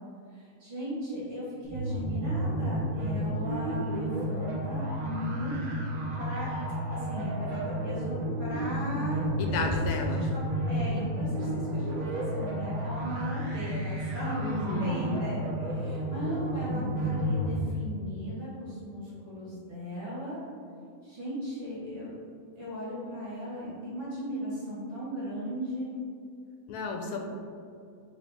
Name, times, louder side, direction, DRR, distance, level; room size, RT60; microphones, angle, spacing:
voice 1, 0.3-5.6 6.2-6.5 6.9-9.7 10.0-20.4 21.0-22.1 22.6-26.0, equal, 50° right, -9 dB, 1.8 m, -37 dB
sound 1, 1.6-17.6, right 1 dB, 85° right, 1.2 m, -31 dB
voice 2, 9.4-10.2 14.4-15.3 26.7-27.3, left 3 dB, 90° left, 2 dB, 1.1 m, -32 dB
3.9 x 2.9 x 3.4 m, 2.3 s
omnidirectional pair, 1.5 m